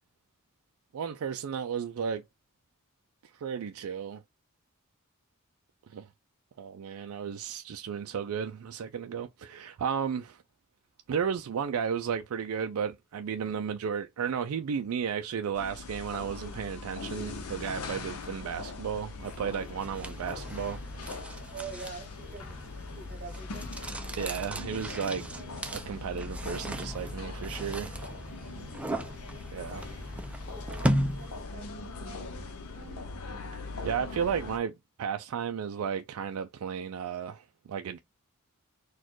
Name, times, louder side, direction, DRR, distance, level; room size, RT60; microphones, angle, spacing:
voice 1, 0.9-2.2 3.3-4.2 5.9-6.1 6.6-10.4 11.1-20.8 24.2-25.2 25.7-28.1 29.5-30.1 33.8-38.0, right 7 dB, 70° right, 0.4 m, -34 dB
sound 1, 15.5-34.6, left 3 dB, 85° left, 0.7 m, -41 dB
sound 2, 19.2-31.6, equal, 5° right, 0.5 m, -37 dB
voice 2, 21.5-23.7 28.3-28.9 30.4-33.1, right 5 dB, 45° right, 1.0 m, -46 dB
4.2 x 2.3 x 4.5 m
head